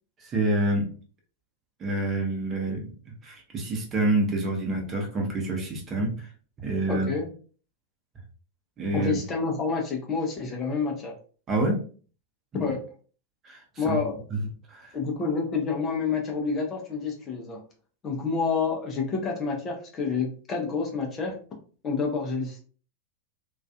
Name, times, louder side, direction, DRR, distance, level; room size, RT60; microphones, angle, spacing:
voice 1, 0.2-0.9 1.8-2.9 3.2-6.3 6.6-7.1 8.8-9.1 11.5-11.8 13.4-14.0 14.3-14.4 14.7-14.9, right 2 dB, 25° right, 0 dB, 0.8 m, -27 dB
voice 2, 6.9-7.3 8.9-11.1 12.5-12.8 13.8-14.2 14.9-17.6 18.0-21.3 21.8-22.6, left 4 dB, 25° left, 1 dB, 0.6 m, -28 dB
2.4 x 2.3 x 2.2 m, 0.41 s
figure-of-eight pair, 90°, 0 cm